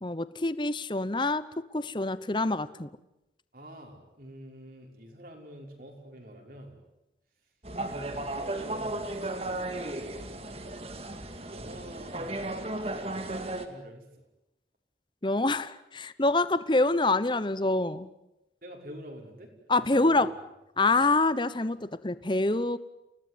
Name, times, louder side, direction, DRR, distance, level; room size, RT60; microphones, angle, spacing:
voice 1, 0.0-2.9 15.2-18.1 19.7-20.3 20.8-22.8, left 2 dB, 25° left, 15 dB, 0.9 m, -26 dB
voice 2, 3.5-6.8 7.7-10.8 11.5-14.2 18.6-20.3 20.8-20.9, equal, 50° right, 2 dB, 5.8 m, -48 dB
sound 1, 7.6-13.7, right 2 dB, 35° right, 2.3 m, -35 dB
29.5 x 18.5 x 9.6 m, 0.91 s
head